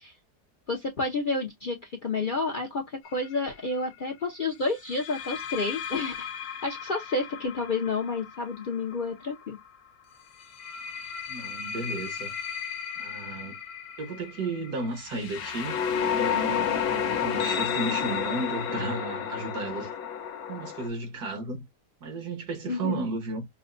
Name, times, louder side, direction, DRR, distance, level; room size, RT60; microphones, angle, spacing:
voice 1, 0.7-6.3 6.6-9.6 22.7-23.0, left 3 dB, 45° left, 0.6 m, -30 dB
sound 1, 3.0-3.3 4.8-9.6 10.4-20.9, left 8 dB, 70° left, 1.2 m, -32 dB
voice 2, 11.3-12.3 13.0-13.6 14.0-19.9 20.5-21.6 22.0-23.4, right 3 dB, 80° right, 1.9 m, -34 dB
5.3 x 2.2 x 2.5 m
omnidirectional pair, 1.7 m